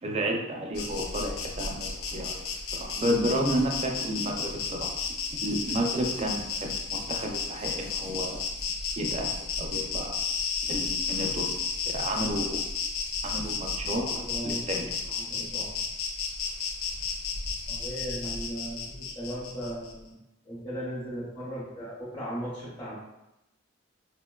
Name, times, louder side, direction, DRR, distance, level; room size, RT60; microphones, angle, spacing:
voice 1, 0.0-4.9 5.4-8.4 9.0-10.2 10.7-11.5 11.9-12.6 13.2-14.9, right 1 dB, 30° right, 1 dB, 0.4 m, -31 dB
Insect, 0.7-19.9, left 5 dB, 90° left, 0.4 m, -33 dB
voice 2, 13.9-15.7 17.7-20.2 20.4-22.9, equal, 25° left, -12 dB, 0.8 m, -37 dB
4.4 x 2.1 x 2.2 m, 0.94 s
head